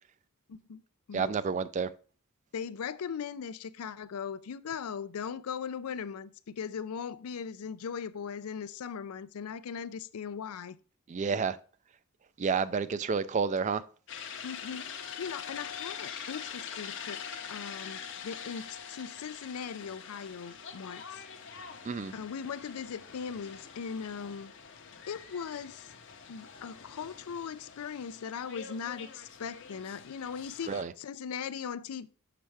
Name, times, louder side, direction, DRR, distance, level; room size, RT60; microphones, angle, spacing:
voice 1, 0.5-0.8 1.1-1.3 2.5-10.8 14.4-17.2 17.5-21.2 22.1-24.5 25.1-25.9 26.3-30.7 31.0-32.1, left 6 dB, 85° left, 0.4 m, -39 dB
voice 2, 1.1-1.9 11.1-11.6 12.4-13.8 21.9-22.1 30.7-30.9, right 5 dB, 35° right, 0.3 m, -30 dB
sound 1, 14.1-30.8, left 7 dB, 55° left, 0.7 m, -44 dB
6.4 x 5.9 x 3.3 m
head